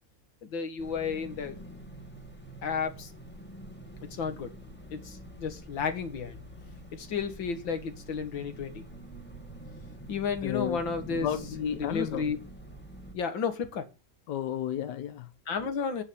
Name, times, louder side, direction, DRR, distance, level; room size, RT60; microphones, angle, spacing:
voice 1, 0.4-1.6 2.6-3.1 4.2-4.5 4.9-6.4 6.9-8.8 10.1-11.3 11.8-12.4 13.1-13.8 15.5-16.0, left 6 dB, 90° left, 2.5 m, -32 dB
sound 1, 0.8-13.1, right 1 dB, 5° left, 2.0 m, -46 dB
voice 2, 10.4-10.8 11.1-12.3 14.3-15.3, left 9 dB, 70° left, 1.4 m, -32 dB
10.0 x 5.6 x 7.1 m
omnidirectional pair, 2.0 m